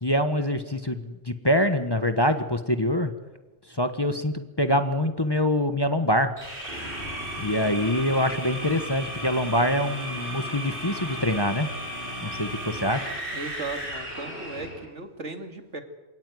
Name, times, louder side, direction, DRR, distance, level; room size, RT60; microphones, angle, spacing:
voice 1, 0.0-3.1 3.8-6.3 7.4-11.7 12.2-13.1, left 1 dB, 20° left, 8 dB, 1.3 m, -25 dB
sound 1, 6.4-14.9, equal, 45° right, 5.8 m, -35 dB
voice 2, 13.3-15.8, right 3 dB, 70° right, 6 dB, 2.9 m, -36 dB
27.0 x 17.5 x 9.5 m, 1.1 s
omnidirectional pair, 1.3 m